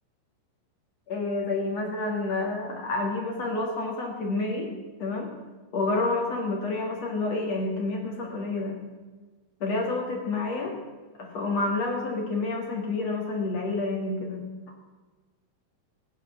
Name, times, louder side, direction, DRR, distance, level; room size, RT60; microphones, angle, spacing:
voice 1, 1.1-4.7 5.0-5.3 5.7-8.8 9.6-10.7 11.2-14.4, left 3 dB, 60° left, 1 dB, 1.7 m, -29 dB
18.0 x 9.6 x 7.3 m, 1.3 s
omnidirectional pair, 5.6 m